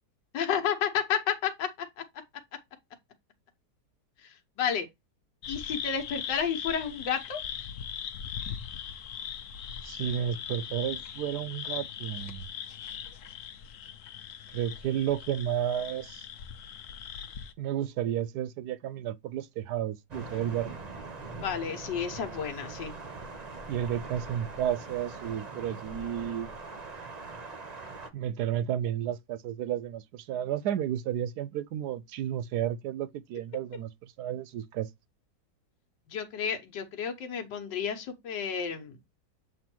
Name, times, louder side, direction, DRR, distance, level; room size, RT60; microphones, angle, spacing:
voice 1, 0.3-1.7 4.6-4.9 5.5-7.4 21.4-22.9 36.1-39.0, left 7 dB, 85° left, 1.7 m, -31 dB
sound 1, 5.4-17.5, left 8 dB, 60° left, 0.9 m, -40 dB
voice 2, 9.8-12.4 14.5-16.2 17.6-20.8 23.7-26.5 28.1-33.9 34.2-34.9, right 10 dB, 75° right, 1.0 m, -32 dB
Thunder, 20.1-28.1, right 3 dB, 35° right, 0.7 m, -42 dB
7.5 x 3.1 x 4.4 m
omnidirectional pair, 1.9 m